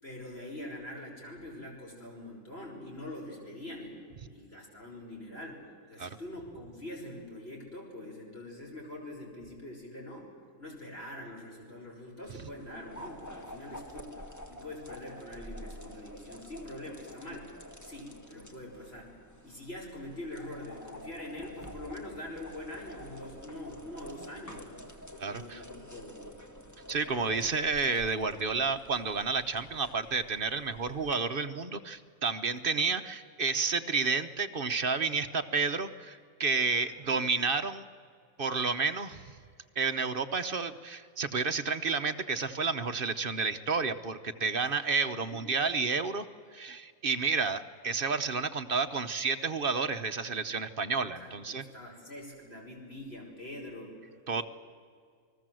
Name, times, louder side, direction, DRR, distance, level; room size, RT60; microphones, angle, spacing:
voice 1, 0.0-5.6 5.9-10.3 10.6-14.2 14.5-17.5 17.8-19.1 19.4-24.8 25.2-26.3 36.6-37.4 45.1-45.4 51.2-54.0 54.4-54.5, left 1 dB, 40° left, -1 dB, 5.6 m, -44 dB
sound 1, 12.2-31.1, equal, 10° left, 1.9 m, -49 dB
voice 2, 25.2-25.6 26.9-37.8 38.4-39.2 39.8-46.3 46.5-51.6 54.3-54.4, right 4 dB, 40° right, 8 dB, 0.9 m, -30 dB
29.0 x 20.0 x 7.7 m, 2.1 s
omnidirectional pair, 1.7 m